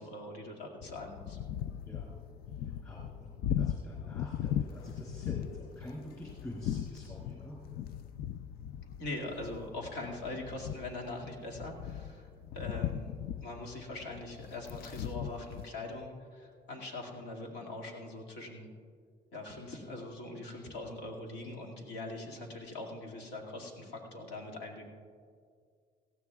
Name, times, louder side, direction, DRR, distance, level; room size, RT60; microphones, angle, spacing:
voice 1, 0.0-1.4 9.0-18.7 19.3-24.9, left 2 dB, 90° left, -1 dB, 2.2 m, -42 dB
sound 1, 0.8-15.7, left 10 dB, 65° left, 0.4 m, -39 dB
voice 2, 1.9-2.2 2.6-7.6, left 1 dB, 20° left, -5 dB, 3.0 m, -47 dB
18.0 x 15.0 x 2.4 m, 2.1 s
cardioid pair, 110°, 17 cm